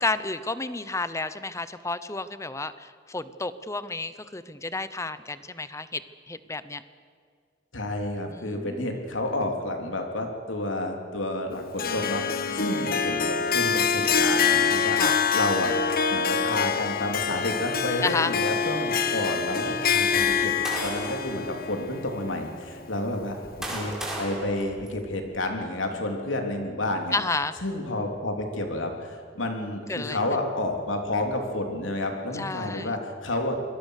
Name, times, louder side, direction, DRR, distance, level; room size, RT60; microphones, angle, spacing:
voice 1, 0.0-6.0 6.3-6.8 8.3-9.0 12.5-12.6 15.0-15.1 18.0-18.3 27.1-27.5 29.9-30.2 32.3-32.9, left 3 dB, 15° left, 14 dB, 0.9 m, -31 dB
voice 2, 7.7-15.7 16.1-20.5 20.8-27.2 27.6-33.7, left 1 dB, 90° left, 3 dB, 3.5 m, -30 dB
Harp, 11.8-23.0, left 6 dB, 50° left, 1.3 m, -25 dB
sound 1, 20.1-21.3 22.1-22.2 23.1-25.4, right 1 dB, 5° right, 4.7 m, -36 dB
26.0 x 21.0 x 6.7 m, 2.1 s
head